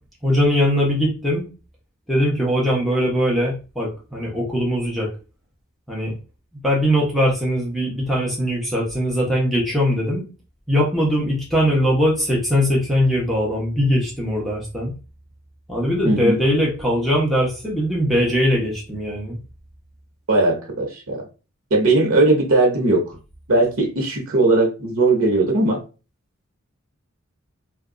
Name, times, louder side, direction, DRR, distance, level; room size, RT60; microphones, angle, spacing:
voice 1, 0.2-1.4 2.1-5.1 5.9-6.2 6.6-10.2 10.7-14.9 15.7-19.4, equal, ahead, 0.9 m, -21 dB
voice 2, 16.0-16.4 20.3-21.2 21.7-23.0 23.5-25.8, right 2 dB, 90° right, 0.9 m, -18 dB
2.6 x 2.3 x 3.7 m
head